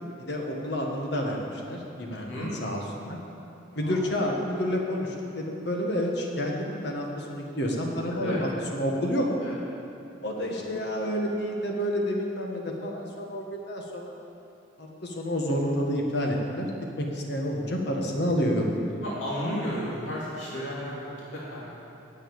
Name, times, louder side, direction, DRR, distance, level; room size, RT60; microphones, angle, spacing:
voice 1, 0.2-2.8 3.1-3.2 3.8-9.3 10.2-14.2 14.8-16.7 17.0-18.7, equal, 55° left, 0 dB, 1.7 m, -29 dB
voice 2, 2.1-2.5 3.7-4.0 8.1-8.4 9.4-9.5 10.4-10.8 19.0-21.7, left 1 dB, 75° left, -7 dB, 2.7 m, -34 dB
9.6 x 7.7 x 8.8 m, 2.7 s
head